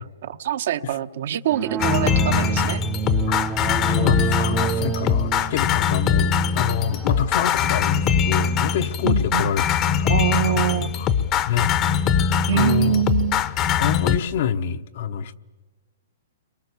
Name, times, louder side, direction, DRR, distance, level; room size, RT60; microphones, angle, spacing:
voice 1, 0.2-2.8 9.0-9.5 10.1-11.0 12.5-13.4, right 9 dB, 60° right, 9 dB, 1.0 m, -24 dB
sound 1, 1.5-9.6, right 8 dB, 20° right, 0.7 m, -30 dB
sound 2, 1.8-14.2, left 7 dB, 25° left, 0.9 m, -22 dB
voice 2, 3.9-10.6 11.0-11.1 11.3-13.0 13.8-15.4, left 8 dB, 55° left, 10 dB, 1.0 m, -27 dB
30.0 x 23.0 x 7.1 m, 1.3 s
hypercardioid pair, 155°, 0 cm